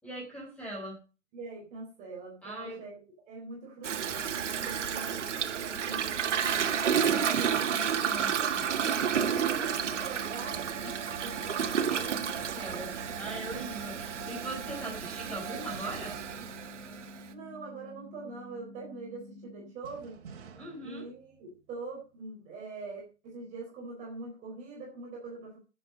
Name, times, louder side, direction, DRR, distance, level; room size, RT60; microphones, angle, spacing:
voice 1, 0.0-1.0 2.4-2.8 8.0-8.7 10.8-10.9 11.9-16.2 20.6-21.1, right 1 dB, 5° left, -2 dB, 5.5 m, -41 dB
voice 2, 1.3-3.0 3.3-10.6 11.2-12.4 12.7-13.0 17.3-20.2 20.8-25.6, right 3 dB, 20° right, -3 dB, 4.2 m, -44 dB
Toilet flush, 3.8-17.3, right 8 dB, 80° right, 1.9 m, -31 dB
sound 1, 9.7-19.7, left 2 dB, 30° left, 2.1 m, -50 dB
sound 2, 9.9-10.2 10.6-11.2 12.4-14.0 15.7-17.5 19.8-22.0, right 6 dB, 55° right, 3.0 m, -50 dB
10.5 x 8.0 x 6.4 m, 0.34 s
hypercardioid pair, 160°, 35 cm